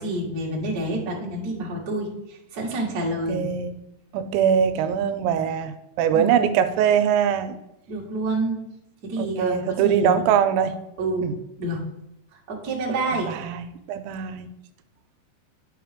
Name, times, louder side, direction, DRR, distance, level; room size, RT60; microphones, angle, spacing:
voice 1, 0.0-3.4 6.1-6.4 7.9-8.6 9.0-9.6 9.8-10.3 11.0-11.3 11.6-11.8 12.5-13.3, right 2 dB, 45° right, -5 dB, 1.2 m, -28 dB
voice 2, 3.3-3.7 4.1-7.6 9.2-10.8 11.2-11.3 13.1-14.5, right 8 dB, 85° right, 10 dB, 2.8 m, -22 dB
9.3 x 6.2 x 3.5 m, 0.83 s
omnidirectional pair, 5.2 m